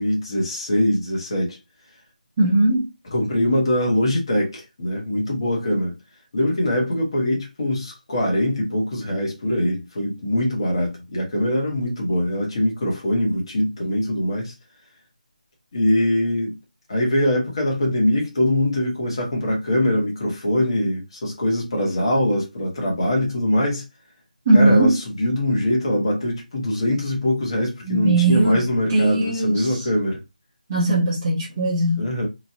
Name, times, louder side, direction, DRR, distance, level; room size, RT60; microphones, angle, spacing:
voice 1, 0.0-1.6 3.1-5.9 6.3-14.5 15.7-16.6 16.9-23.8 24.5-30.2 32.0-32.3, left 1 dB, 35° left, 1.2 m, -22 dB
voice 2, 2.4-2.9 24.5-24.9 27.9-28.6 28.9-29.7 30.7-32.0, right 2 dB, 20° right, 0.6 m, -18 dB
3.0 x 2.5 x 2.5 m
figure-of-eight pair, 175°, 5 cm